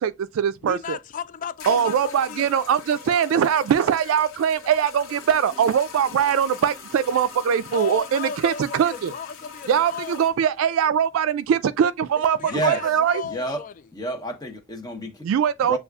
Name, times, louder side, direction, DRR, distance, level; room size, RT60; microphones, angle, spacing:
voice 1, 0.0-1.0 1.7-9.1 9.7-13.2 15.2-15.8, right 8 dB, 80° right, 0.3 m, -22 dB
voice 2, 0.6-2.5 7.7-10.3 12.3-13.7, left 7 dB, 40° left, 0.3 m, -35 dB
sound 1, 0.8-0.9 1.6-10.3, left 6 dB, 90° left, 0.9 m, -40 dB
voice 3, 12.4-12.8 13.2-13.6 13.9-15.2 15.6-15.8, right 1 dB, 20° left, 0.8 m, -29 dB
6.8 x 2.3 x 2.3 m
head